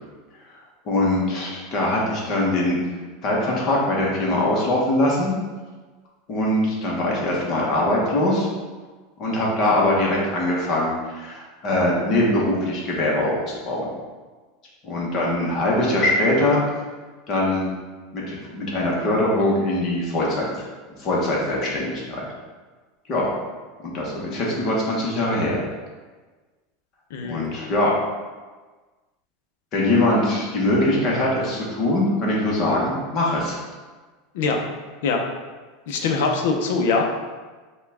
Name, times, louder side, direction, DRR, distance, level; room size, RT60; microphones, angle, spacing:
voice 1, 0.8-2.8 3.2-5.3 6.3-8.5 9.2-13.4 13.6-13.9 14.8-16.6 17.3-17.7 18.1-20.7 21.0-22.2 23.1-23.3 23.9-25.6 27.2-27.9 29.7-33.6, left 1 dB, 30° left, -4 dB, 1.0 m, -22 dB
voice 2, 27.1-27.5 34.3-34.6 35.0-35.2 35.9-37.0, left 4 dB, 65° left, 2 dB, 0.6 m, -22 dB
5.4 x 2.3 x 3.5 m, 1.3 s
supercardioid pair, 175°, 0 cm